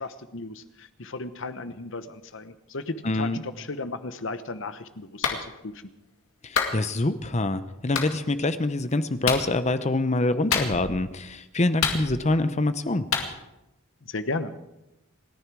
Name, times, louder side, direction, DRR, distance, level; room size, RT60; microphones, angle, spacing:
voice 1, 0.0-5.8 14.0-14.5, left 3 dB, 60° left, 11 dB, 1.0 m, -35 dB
voice 2, 3.0-3.4 6.4-13.1, left 2 dB, 30° left, 12 dB, 0.8 m, -25 dB
Clapping, 5.2-5.4 6.5-6.8 7.9-8.1 9.2-9.5 10.5-11.0 11.8-12.4 13.1-13.3, left 6 dB, 80° left, 2.2 m, -26 dB
29.0 x 10.5 x 4.7 m, 0.93 s
head